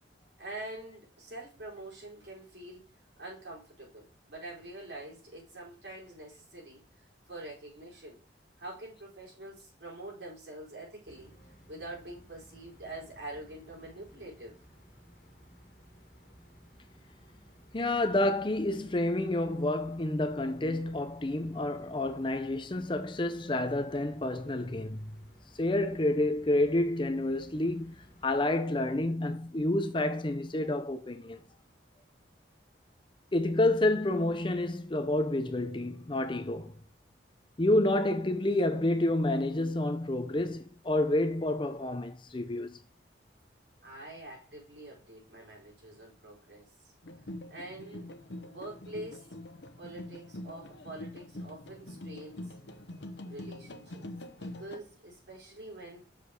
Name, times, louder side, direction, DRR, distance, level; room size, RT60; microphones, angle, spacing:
voice 1, 0.4-2.9 3.2-8.2 8.6-11.3 11.7-14.5 43.8-46.9 47.5-49.3 49.8-52.5 53.2-54.0 54.4-56.0, right 1 dB, 65° right, 4.4 m, -45 dB
sound 1, 11.1-28.4, equal, 45° left, 1.9 m, -57 dB
voice 2, 17.7-25.1 25.6-31.4 33.3-36.7 37.6-42.8, left 1 dB, 25° left, 0.5 m, -29 dB
sound 2, 47.0-54.8, left 1 dB, 70° left, 0.9 m, -44 dB
6.6 x 5.2 x 5.1 m
head